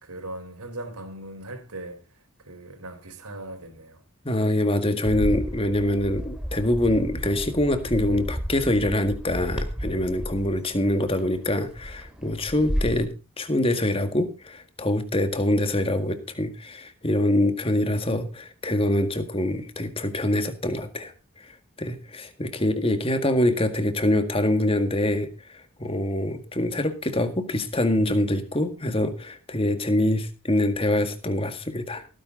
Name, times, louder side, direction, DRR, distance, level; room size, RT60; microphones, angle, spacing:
voice 1, 0.0-2.0 2.4-4.0, right 2 dB, 85° right, 4.2 m, -39 dB
voice 2, 4.3-21.1 21.4-21.5 21.8-32.1, left 1 dB, 25° left, 1.8 m, -25 dB
Bird, 5.1-13.0, equal, 5° right, 2.2 m, -33 dB
17.0 x 9.8 x 3.9 m
head